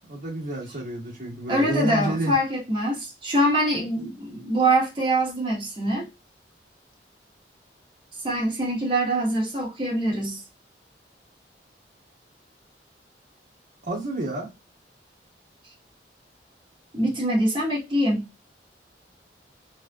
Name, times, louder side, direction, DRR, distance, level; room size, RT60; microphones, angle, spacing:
voice 1, 0.1-2.4 13.8-14.5, right 1 dB, 45° right, 1.3 m, -30 dB
voice 2, 1.5-6.1 8.2-10.4 16.9-18.3, right 1 dB, 25° right, 1.3 m, -24 dB
3.3 x 2.7 x 2.3 m
head